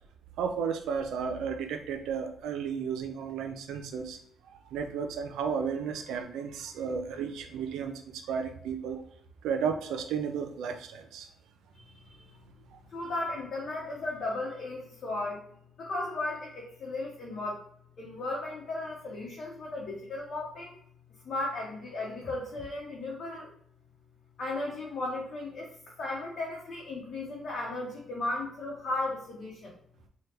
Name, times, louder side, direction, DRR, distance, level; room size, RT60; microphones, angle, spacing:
voice 1, 0.4-4.2 4.7-7.9 8.3-9.0 9.4-11.3, right 6 dB, 85° right, 5 dB, 0.5 m, -33 dB
voice 2, 11.8-12.2 12.9-15.4 15.8-17.6 18.0-20.7 21.2-23.5 24.4-29.7, left 2 dB, 60° left, -3 dB, 0.9 m, -35 dB
2.9 x 2.3 x 3.3 m, 0.66 s
cardioid pair, 90°, 0 cm